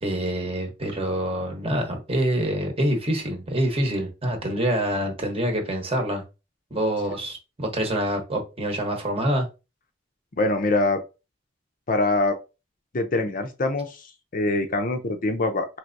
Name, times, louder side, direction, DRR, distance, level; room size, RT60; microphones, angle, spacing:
voice 1, 0.0-6.2 6.7-9.5, right 1 dB, 30° right, 1.0 m, -26 dB
voice 2, 10.4-11.0 11.9-12.4 12.9-15.7, left 2 dB, 45° left, 0.5 m, -24 dB
4.5 x 3.3 x 2.5 m
head